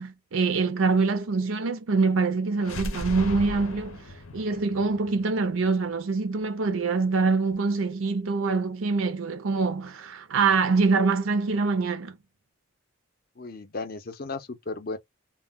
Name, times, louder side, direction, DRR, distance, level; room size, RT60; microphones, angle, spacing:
voice 1, 0.0-4.0 4.3-12.2, right 4 dB, 75° right, 0.5 m, -25 dB
sound 1, 2.6-6.4, left 1 dB, 90° left, 0.7 m, -37 dB
voice 2, 13.4-15.0, left 3 dB, 45° left, 0.5 m, -35 dB
2.1 x 2.1 x 3.5 m
head